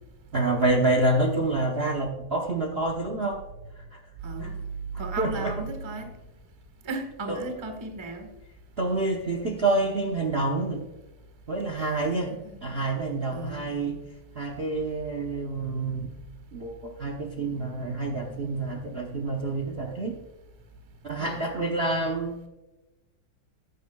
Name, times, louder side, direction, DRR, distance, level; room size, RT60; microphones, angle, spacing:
voice 1, 0.3-3.4 3.9-4.0 4.4-4.5 5.2-5.5 7.3-7.4 8.8-10.9 11.5-12.4 12.6-14.0 14.3-16.2 16.5-20.2 21.0-22.3, right 2 dB, 50° right, 2 dB, 0.7 m, -27 dB
voice 2, 4.2-4.6 5.0-6.1 6.8-8.3 11.8-12.6 13.3-13.6 21.2-21.5, right 3 dB, 15° right, 4 dB, 1.1 m, -35 dB
14.5 x 9.1 x 2.3 m, 1.1 s
omnidirectional pair, 2.4 m